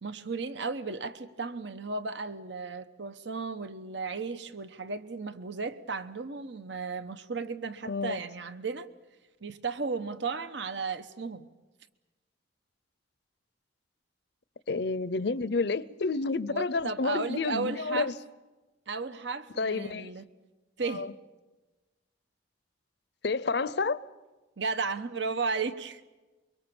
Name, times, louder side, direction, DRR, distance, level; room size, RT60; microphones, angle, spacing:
voice 1, 0.0-8.9 9.4-11.5 16.5-18.1 18.9-20.2 20.8-21.1 24.6-26.0, right 4 dB, 70° right, 1.1 m, -34 dB
voice 2, 7.9-8.2 14.7-18.1 19.6-20.1 20.9-21.1 23.2-24.0, left 4 dB, 60° left, 0.7 m, -30 dB
24.5 x 23.5 x 7.1 m
head